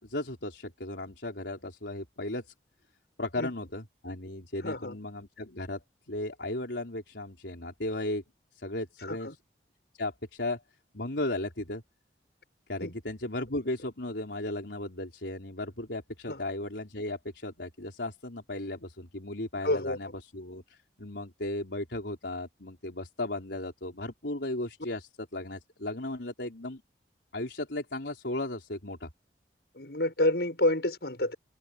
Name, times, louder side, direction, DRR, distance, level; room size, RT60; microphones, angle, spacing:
voice 1, 0.0-2.5 3.2-5.8 6.1-8.2 8.6-9.3 10.0-10.6 10.9-11.8 12.7-26.8 27.3-29.1, left 1 dB, 85° left, 4.2 m, -35 dB
voice 2, 4.6-5.0 9.1-9.3 12.8-13.0 16.3-16.4 19.6-20.0 29.8-31.3, left 1 dB, 70° left, 6.3 m, -28 dB
head